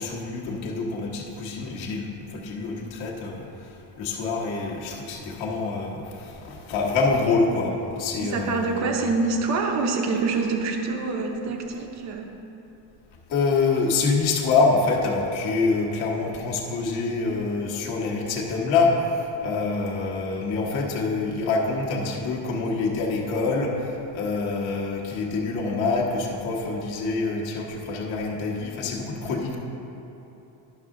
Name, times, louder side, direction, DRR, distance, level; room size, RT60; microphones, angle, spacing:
voice 1, 0.0-8.9 13.3-29.6, left 3 dB, 50° left, -3 dB, 1.2 m, -26 dB
voice 2, 8.2-12.3 29.2-29.4, right 4 dB, 35° right, 3 dB, 0.7 m, -26 dB
11.0 x 6.2 x 3.7 m, 2.9 s
cardioid pair, 175°, 49 cm